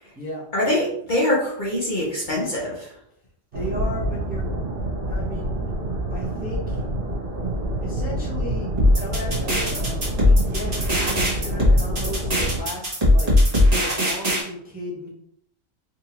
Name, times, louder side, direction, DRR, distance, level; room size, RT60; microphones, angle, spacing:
voice 1, 0.5-2.9, left 1 dB, 40° left, -5 dB, 0.9 m, -24 dB
voice 2, 3.5-4.5 5.1-5.6 6.1-6.9 7.8-8.7 9.0-13.3 13.7-15.1, equal, 10° right, -6 dB, 0.8 m, -35 dB
sound 1, 3.5-12.6, right 1 dB, 50° right, 0.9 m, -27 dB
sound 2, 8.8-14.4, left 1 dB, 30° right, 1.1 m, -19 dB
3.7 x 2.6 x 2.9 m, 0.67 s
omnidirectional pair, 1.4 m